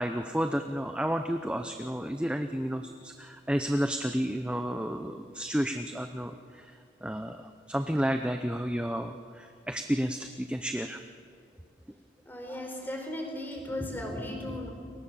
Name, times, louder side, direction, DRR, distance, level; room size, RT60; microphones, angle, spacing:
voice 1, 0.0-6.7 7.0-11.0, equal, 5° right, 7 dB, 0.7 m, -31 dB
voice 2, 12.2-14.7, left 1 dB, 10° left, 2 dB, 4.3 m, -36 dB
29.5 x 24.0 x 7.0 m, 2.5 s
head